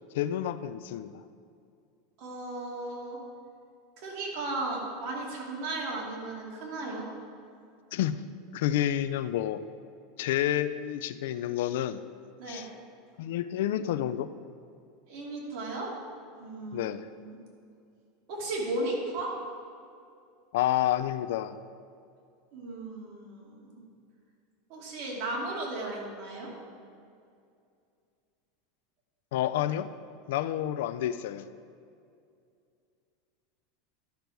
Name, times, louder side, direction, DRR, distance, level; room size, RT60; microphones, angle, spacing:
voice 1, 0.1-1.2 7.9-8.2 8.5-9.6 10.2-12.0 12.5-12.7 13.2-14.3 16.7-17.1 20.5-21.6 29.3-29.9 30.3-31.5, left 12 dB, 75° left, 13 dB, 0.4 m, -29 dB
voice 2, 2.2-3.2 4.0-7.1 12.4-12.7 15.1-15.9 16.4-17.4 18.3-19.3 22.5-23.8 24.7-26.5, right 2 dB, 55° right, -3 dB, 2.7 m, -35 dB
12.0 x 6.8 x 4.6 m, 2.4 s
supercardioid pair, 140°, 0 cm